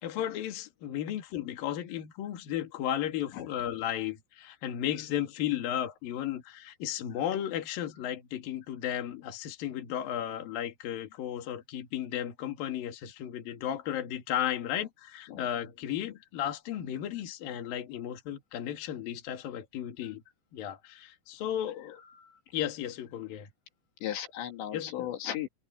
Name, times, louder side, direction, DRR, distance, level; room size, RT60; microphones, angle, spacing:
voice 1, 0.0-20.2 20.5-22.0 22.5-23.5 24.7-25.1, left 11 dB, 60° left, 3.6 m, -34 dB
voice 2, 24.0-25.5, left 11 dB, 85° left, 4.5 m, -36 dB
omnidirectional pair, 4.9 m